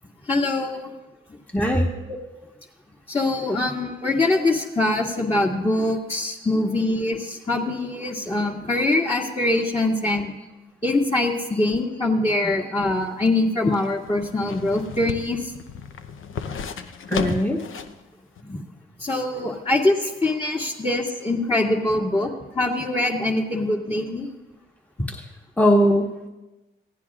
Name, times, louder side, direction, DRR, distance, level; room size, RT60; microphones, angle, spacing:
voice 1, 0.3-0.9 3.1-10.3 10.8-15.5 18.5-18.6 19.0-24.3, left 2 dB, 25° left, -5 dB, 2.3 m, -23 dB
voice 2, 1.5-1.9 17.1-17.6 18.4-18.5 25.1-25.2 25.6-26.3, equal, 5° left, 1 dB, 1.5 m, -20 dB
sound 1, 12.9-18.0 18.4-18.5, left 6 dB, 70° left, 0.9 m, -34 dB
23.0 x 15.5 x 2.5 m, 1.1 s
cardioid pair, 65°, 21 cm